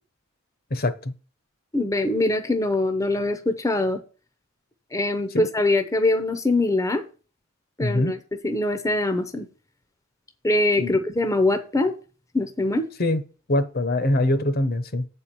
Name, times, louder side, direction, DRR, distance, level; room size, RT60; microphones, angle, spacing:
voice 1, 0.7-1.1 5.3-5.5 7.8-8.1 10.8-10.9 13.0-13.2 13.5-15.0, left 1 dB, 45° left, 0.9 m, -23 dB
voice 2, 1.7-4.0 4.9-7.0 7.8-8.2 8.4-9.5 10.4-11.9 12.3-12.9, left 2 dB, 15° left, 0.7 m, -23 dB
8.0 x 4.5 x 6.7 m
head